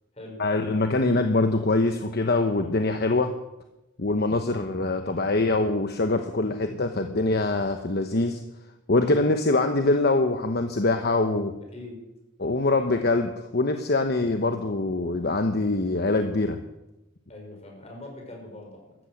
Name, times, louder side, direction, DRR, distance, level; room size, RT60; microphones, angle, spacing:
voice 1, 0.4-3.3 4.0-8.4 8.9-11.5 12.4-16.6, left 2 dB, 55° left, 6 dB, 1.0 m, -24 dB
voice 2, 11.7-12.0 17.3-19.0, left 2 dB, 35° left, 1 dB, 5.4 m, -42 dB
14.0 x 13.0 x 7.8 m, 0.96 s
head